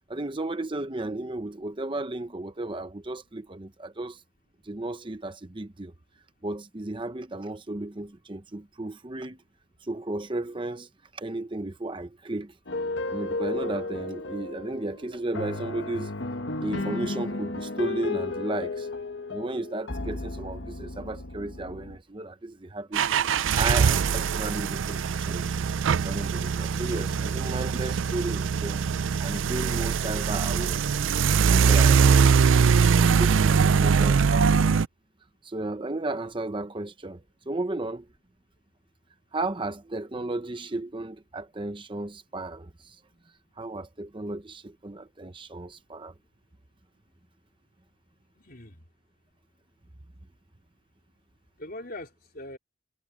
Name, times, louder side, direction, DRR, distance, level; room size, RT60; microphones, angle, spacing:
voice 1, 0.1-4.2 4.6-5.9 6.4-9.4 9.8-12.5 13.1-16.1 16.6-18.9 19.3-23.1 23.6-25.5 25.9-28.8 29.2-30.8 31.4-32.6 32.9-34.8 35.4-38.1 39.3-43.0 43.6-46.1, right 2 dB, 25° right, 0.8 m, -34 dB
sound 1, 12.7-22.0, left 2 dB, 70° left, 1.5 m, -33 dB
sound 2, 22.9-34.9, right 6 dB, 85° right, 0.5 m, -22 dB
voice 2, 48.4-48.8 51.6-52.6, left 1 dB, 50° left, 4.0 m, -41 dB
head